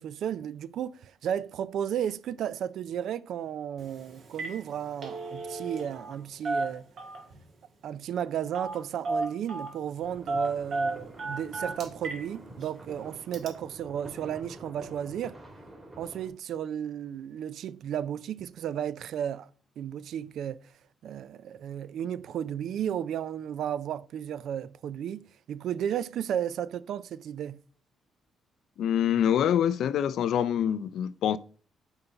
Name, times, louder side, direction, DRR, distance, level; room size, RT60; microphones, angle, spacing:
voice 1, 0.0-6.9 7.8-15.4 16.0-19.5 19.8-20.6 21.0-27.6, right 9 dB, 70° right, 0.3 m, -33 dB
Telephone, 3.8-3.9 4.2-4.6 4.9-6.2 6.4-7.4 8.5-8.8 9.0-9.7 10.3-12.2 12.6-12.7 13.3-13.5, right 2 dB, 55° right, 1.4 m, -33 dB
sound 1, 10.0-16.3, right 1 dB, 25° right, 2.4 m, -48 dB
voice 2, 28.8-31.4, left 9 dB, 75° left, 0.4 m, -25 dB
5.6 x 4.5 x 3.8 m
cardioid pair, 90°, 0 cm